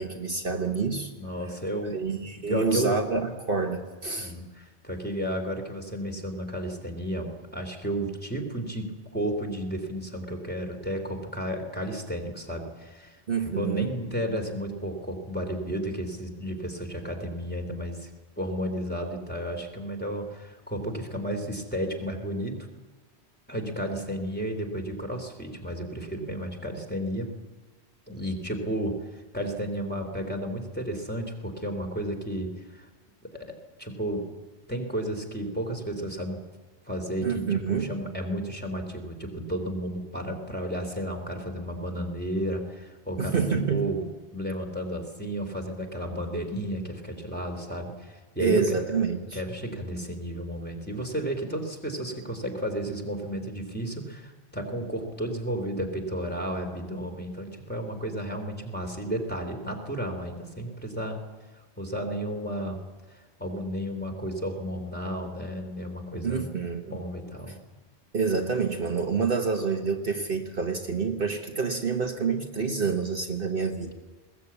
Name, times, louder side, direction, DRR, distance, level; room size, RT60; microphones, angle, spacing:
voice 1, 0.0-1.1 1.9-4.3 13.3-13.9 37.2-37.9 43.2-43.9 48.4-49.4 66.2-67.0 68.1-73.9, right 5 dB, 55° right, 3 dB, 1.5 m, -28 dB
voice 2, 1.2-2.0 2.5-3.0 4.2-18.1 18.4-22.6 23.5-27.3 28.1-32.9 33.3-34.2 34.7-36.4 36.9-44.1 44.3-48.8 49.3-61.2 61.8-62.8 63.1-66.5 66.9-67.6, right 1 dB, 10° left, 2 dB, 2.8 m, -32 dB
20.5 x 18.5 x 8.4 m, 1.3 s
omnidirectional pair, 1.1 m